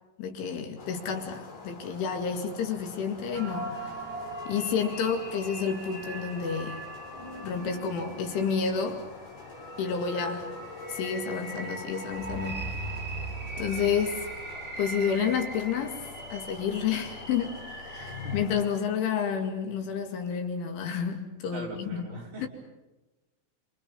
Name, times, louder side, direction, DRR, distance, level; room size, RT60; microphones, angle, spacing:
voice 1, 0.2-3.9 4.5-6.8 7.4-9.0 9.8-10.6 10.9-12.7 13.6-14.2 14.8-16.0 16.3-22.1, left 6 dB, 70° left, 4.6 m, -30 dB
sound 1, 0.8-18.8, left 4 dB, 50° left, 5.9 m, -47 dB
sound 2, 3.3-18.4, right 1 dB, 15° right, 7.9 m, -39 dB
voice 2, 17.9-18.4 21.5-22.5, right 1 dB, 40° right, 5.8 m, -41 dB
29.0 x 28.0 x 5.5 m
omnidirectional pair, 5.9 m